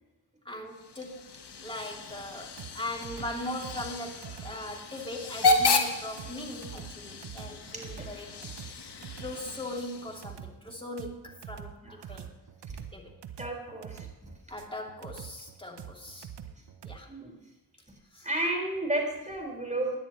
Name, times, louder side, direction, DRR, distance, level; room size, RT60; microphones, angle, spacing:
voice 1, 0.4-1.3 1.6-8.5 9.2-12.4 12.9-13.1 14.5-16.3 16.8-17.1 18.1-18.3, left 1 dB, 15° left, 0 dB, 2.8 m, -40 dB
Hiss / Train / Alarm, 0.7-10.4, left 3 dB, 75° left, 1.2 m, -32 dB
sound 1, 2.6-17.0, right 9 dB, 85° right, 0.8 m, -45 dB
voice 2, 7.7-8.2 11.8-12.2 12.7-12.8 13.4-14.3 17.1-17.3 18.2-20.0, right 1 dB, 20° right, 0 dB, 4.8 m, -33 dB
17.0 x 10.5 x 3.1 m, 1.1 s
cardioid pair, 40°, 40 cm